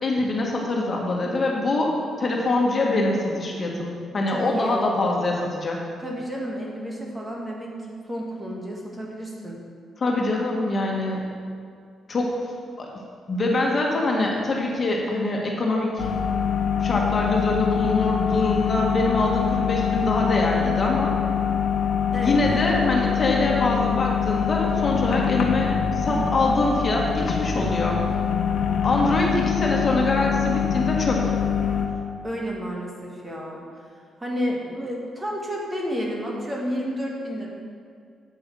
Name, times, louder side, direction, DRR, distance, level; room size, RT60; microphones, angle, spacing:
voice 1, 0.0-1.9 2.2-5.8 10.0-11.3 12.1-12.3 12.8-12.9 13.3-16.1 16.8-21.1 22.2-28.0 28.8-31.3, left 2 dB, 40° left, -1 dB, 1.8 m, -24 dB
voice 2, 4.3-4.9 6.0-9.6 22.1-23.0 26.1-26.4 32.2-33.6 34.2-37.5, equal, 20° right, -2 dB, 2.0 m, -31 dB
sound 1, 16.0-31.9, left 7 dB, 70° left, 1.1 m, -24 dB
8.9 x 5.6 x 7.0 m, 2.3 s
cardioid pair, 90°, 0 cm